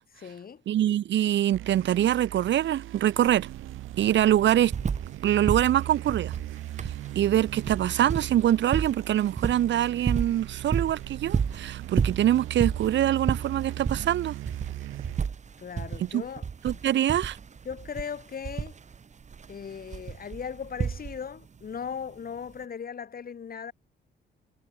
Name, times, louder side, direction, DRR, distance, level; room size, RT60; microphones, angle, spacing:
voice 1, 0.1-0.6 15.6-16.8 17.6-18.8 19.5-23.7, left 7 dB, 45° left, 6.4 m, -38 dB
voice 2, 0.7-3.5 4.0-4.7 5.2-6.4 6.8-14.4 16.0-16.2 16.6-17.3, right 12 dB, 65° right, 1.0 m, -24 dB
sound 1, 1.5-15.3, right 14 dB, 85° right, 7.4 m, -39 dB
sound 2, 3.4-3.5 3.8-5.2 5.5-21.4 22.5-22.6, right 6 dB, 35° right, 1.3 m, -32 dB
cardioid pair, 90°, 20 cm